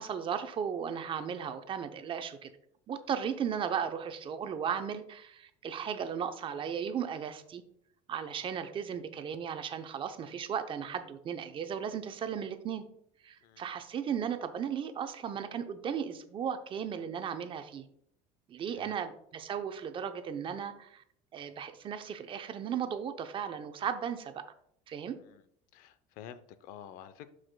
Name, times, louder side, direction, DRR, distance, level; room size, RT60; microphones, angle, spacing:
voice 1, 0.0-2.5 2.9-7.6 8.1-12.8 13.2-17.9 18.5-21.0 21.3-24.4 24.9-25.2, right 8 dB, 35° right, 9 dB, 0.6 m, -36 dB
voice 2, 25.7-27.3, left 9 dB, 65° left, 13 dB, 0.6 m, -49 dB
12.0 x 4.9 x 2.2 m, 0.69 s
cardioid pair, 125°, 15 cm